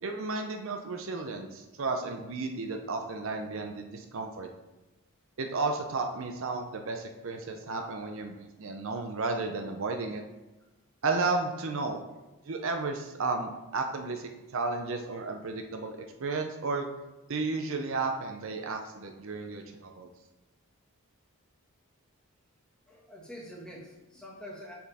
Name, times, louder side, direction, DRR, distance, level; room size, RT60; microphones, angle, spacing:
voice 1, 0.0-4.5 5.4-10.2 11.0-12.0 12.4-16.9 17.3-20.1, right 3 dB, 60° right, 4 dB, 0.6 m, -33 dB
voice 2, 22.9-24.7, equal, 5° left, -4 dB, 1.4 m, -45 dB
6.3 x 5.7 x 4.1 m, 1.1 s
head